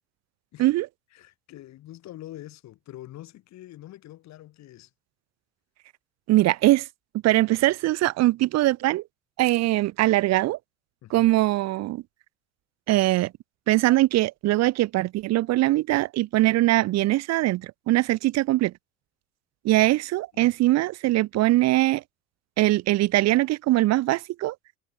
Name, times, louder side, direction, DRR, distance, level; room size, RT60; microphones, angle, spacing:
voice 1, 1.1-4.9 11.0-11.3 20.3-20.6, left 14 dB, 45° left, 2.8 m, -45 dB
voice 2, 6.3-6.9 7.2-9.0 9.4-10.6 11.1-12.0 12.9-13.3 13.7-18.7 19.6-22.0 22.6-24.5, right 17 dB, 45° right, 1.1 m, -22 dB
figure-of-eight pair, 70°, 37 cm